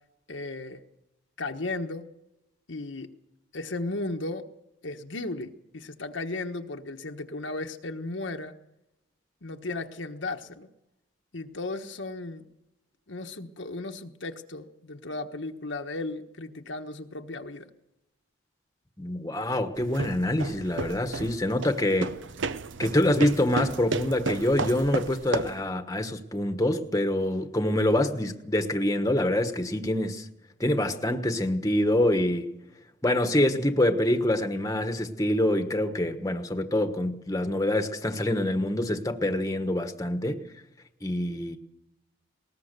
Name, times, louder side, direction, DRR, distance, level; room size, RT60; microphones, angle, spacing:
voice 1, 0.3-0.8 1.4-2.1 2.7-3.1 3.5-4.5 4.8-8.5 9.4-10.7 11.3-12.5 13.1-17.7, left 2 dB, 75° left, 1.3 m, -35 dB
voice 2, 19.0-22.2 22.8-30.2 30.6-32.5 33.0-40.4 41.0-41.6, left 1 dB, 15° left, 1.2 m, -26 dB
sound 1, 19.8-25.7, right 4 dB, 75° right, 0.7 m, -33 dB
20.0 x 19.5 x 6.8 m
head